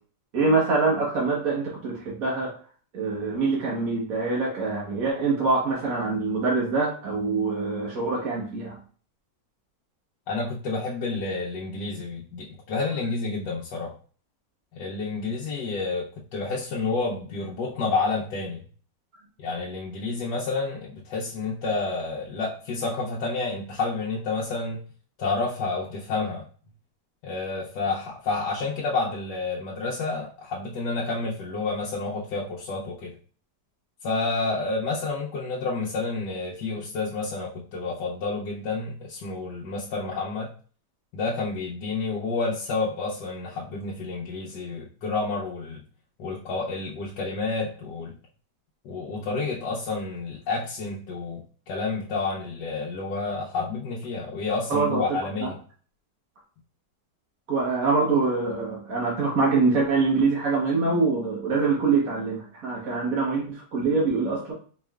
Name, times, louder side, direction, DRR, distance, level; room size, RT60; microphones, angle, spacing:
voice 1, 0.3-2.5 2.9-8.8 54.7-55.5 57.5-64.5, right 4 dB, 60° right, 1.3 m, -24 dB
voice 2, 10.3-14.0 14.7-18.6 19.4-24.8 25.2-26.5 27.2-33.1 34.0-40.5 41.1-45.8 46.2-48.1 48.8-55.6, left 3 dB, 80° left, 1.3 m, -29 dB
4.5 x 3.1 x 2.3 m
omnidirectional pair, 1.9 m